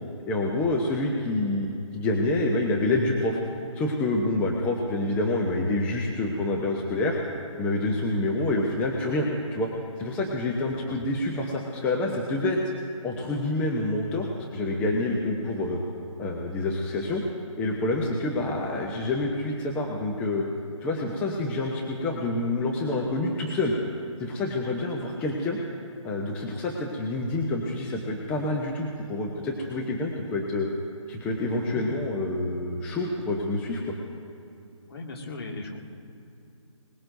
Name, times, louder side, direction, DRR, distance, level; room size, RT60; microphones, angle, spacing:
voice 1, 0.3-1.7 1.9-3.4 3.7-7.2 7.6-9.7 10.0-12.6 13.0-15.8 16.2-17.2 17.6-20.5 20.8-23.7 24.2-25.6 26.0-30.7 31.1-33.9, left 2 dB, 10° left, -1 dB, 0.7 m, -27 dB
voice 2, 34.9-35.8, left 3 dB, 45° left, 0 dB, 2.2 m, -37 dB
21.5 x 20.5 x 2.7 m, 2.7 s
figure-of-eight pair, 155°, 17 cm